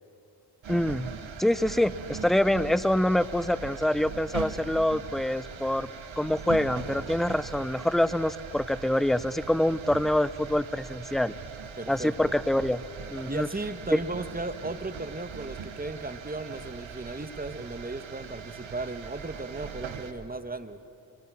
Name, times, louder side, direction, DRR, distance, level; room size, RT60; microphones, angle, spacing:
sound 1, 0.6-20.1, right 6 dB, 75° right, 1.6 m, -40 dB
voice 1, 0.7-1.1 1.4-5.9 6.2-11.3 11.9-12.8 13.1-13.5 13.9-14.0, left 1 dB, ahead, 15 dB, 0.7 m, -25 dB
voice 2, 11.8-12.4 13.3-20.8, right 2 dB, 20° right, 10 dB, 1.6 m, -36 dB
28.0 x 24.5 x 6.4 m, 2.4 s
cardioid pair, 50°, 47 cm